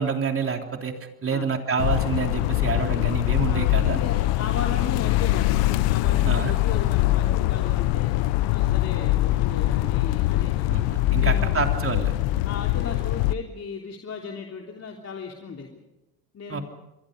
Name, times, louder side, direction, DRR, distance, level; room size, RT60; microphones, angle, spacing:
voice 1, 0.0-4.0 6.2-6.5 10.7-10.8 11.1-12.1 16.5-16.6, right 5 dB, 30° right, 4 dB, 3.5 m, -27 dB
sound 1, 1.8-13.3, left 16 dB, 70° left, 1.0 m, -23 dB
voice 2, 3.5-8.1 8.5-11.7 12.4-15.7 16.3-16.6, left 5 dB, 35° left, 1 dB, 3.3 m, -36 dB
28.5 x 22.5 x 5.3 m, 0.95 s
supercardioid pair, 90°, 44 cm